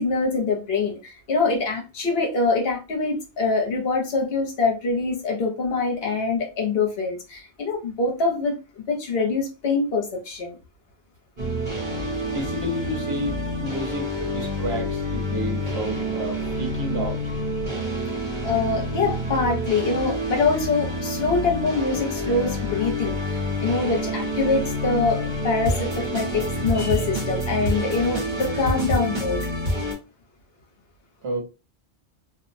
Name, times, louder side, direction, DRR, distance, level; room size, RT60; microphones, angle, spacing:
voice 1, 0.0-8.6 8.9-10.6 18.4-29.5, left 4 dB, 65° left, 0.8 m, -24 dB
sound 1, 11.4-29.9, equal, 45° right, 1.0 m, -28 dB
voice 2, 12.2-17.3 31.2-31.4, right 1 dB, 65° right, 1.1 m, -31 dB
2.4 x 2.0 x 2.5 m
omnidirectional pair, 1.2 m